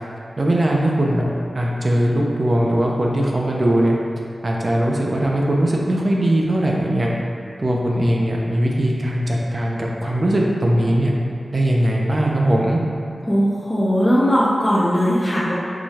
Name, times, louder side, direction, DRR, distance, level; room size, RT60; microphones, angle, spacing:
voice 1, 0.4-1.3 1.5-4.0 4.4-7.1 7.6-11.1 11.5-12.8, right 1 dB, 40° right, -2 dB, 0.5 m, -19 dB
voice 2, 13.3-15.5, equal, 15° left, -9 dB, 0.5 m, -18 dB
4.7 x 2.3 x 2.7 m, 2.4 s
wide cardioid pair, 85°, 0 cm